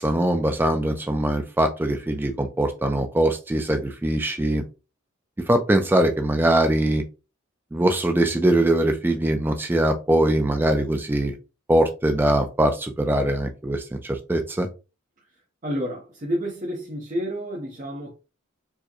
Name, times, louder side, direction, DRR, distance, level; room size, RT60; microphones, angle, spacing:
voice 1, 0.0-4.6 5.5-7.0 7.7-11.3 11.7-14.7, right 1 dB, 10° right, 0.3 m, -22 dB
voice 2, 15.6-18.1, equal, 40° right, 0.8 m, -29 dB
4.5 x 2.1 x 2.9 m
head